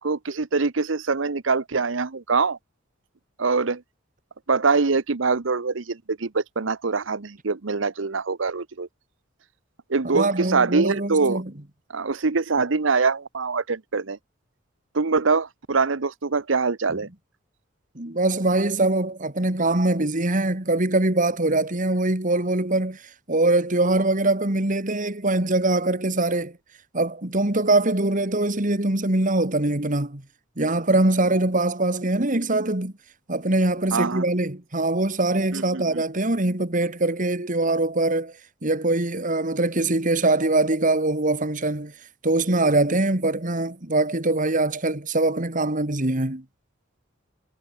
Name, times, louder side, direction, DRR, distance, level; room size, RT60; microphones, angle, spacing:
voice 1, 0.0-2.6 3.4-3.8 4.5-8.9 9.9-11.4 11.9-14.2 14.9-17.1 33.9-34.3 35.5-36.0, right 4 dB, 75° right, 0.9 m, -24 dB
voice 2, 10.0-11.5 16.9-17.0 18.0-23.0 23.3-26.5 26.9-30.2 30.6-32.9 33.3-38.3 38.6-41.9 42.2-46.4, right 2 dB, 40° right, 2.5 m, -23 dB
head